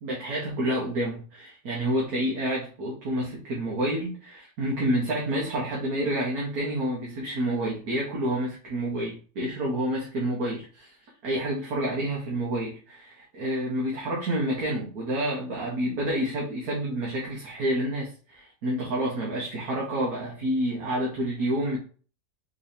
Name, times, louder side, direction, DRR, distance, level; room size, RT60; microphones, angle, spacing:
voice 1, 0.0-10.9 11.2-21.8, right 1 dB, 65° right, -3 dB, 1.5 m, -29 dB
4.5 x 3.2 x 2.7 m, 0.39 s
omnidirectional pair, 1.8 m